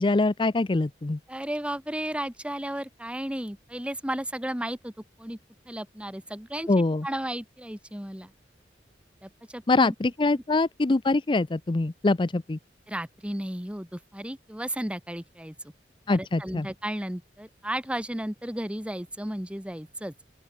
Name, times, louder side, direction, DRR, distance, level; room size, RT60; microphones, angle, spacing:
voice 1, 0.0-1.2 6.7-7.1 9.7-12.6 16.1-16.7, left 2 dB, 25° left, 0.5 m, -24 dB
voice 2, 1.3-4.9 5.2-5.4 5.7-6.7 7.0-8.3 9.2-9.9 12.9-15.5 16.1-20.1, right 1 dB, 5° right, 1.6 m, -34 dB
open air
head